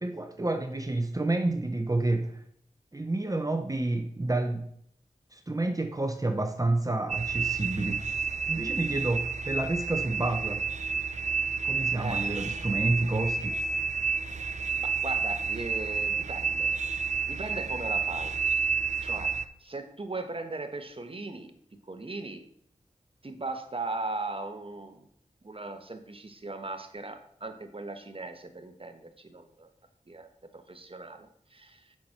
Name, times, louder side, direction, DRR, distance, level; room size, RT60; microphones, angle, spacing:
voice 1, 0.0-2.4 2.9-4.7 5.3-8.0 8.5-10.6 11.6-13.5, right 2 dB, 25° right, 5 dB, 0.9 m, -29 dB
sound 1, 7.1-19.4, right 5 dB, 60° right, 0.7 m, -30 dB
voice 2, 12.0-12.3 14.8-16.8 17.3-18.4 19.0-21.5 21.9-22.5 23.2-25.1 25.4-29.7 30.1-31.9, right 2 dB, 40° right, 7 dB, 1.3 m, -38 dB
7.3 x 5.9 x 5.9 m, 0.69 s
cardioid pair, 50°, 14 cm